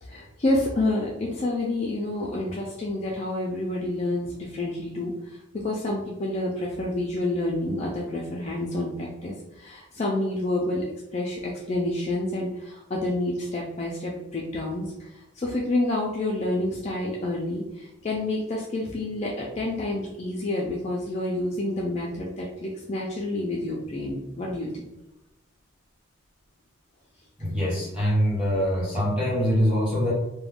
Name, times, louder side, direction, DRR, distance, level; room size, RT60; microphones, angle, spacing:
voice 1, 0.0-10.8 11.1-24.8, left 1 dB, 30° left, -3 dB, 0.3 m, -29 dB
voice 2, 27.4-30.1, equal, 5° right, -8 dB, 1.2 m, -24 dB
2.4 x 2.1 x 3.4 m, 0.97 s
head